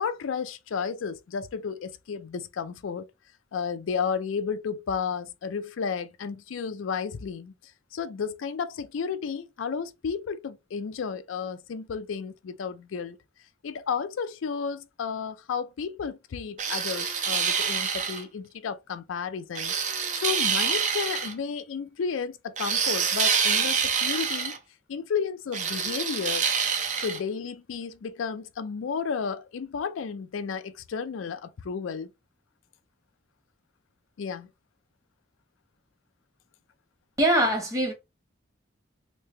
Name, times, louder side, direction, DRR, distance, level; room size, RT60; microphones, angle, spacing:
voice 1, 0.0-3.1 3.5-7.5 7.9-13.2 13.6-19.7 20.2-24.6 24.9-26.5 27.0-32.1 34.2-34.5, left 6 dB, 90° left, 0.4 m, -32 dB
sound 1, 16.6-18.2 19.5-21.3 22.6-24.6 25.5-27.2, right 6 dB, 40° right, 0.5 m, -26 dB
voice 2, 37.2-37.9, right 1 dB, 15° right, 1.1 m, -22 dB
3.2 x 2.8 x 3.2 m
head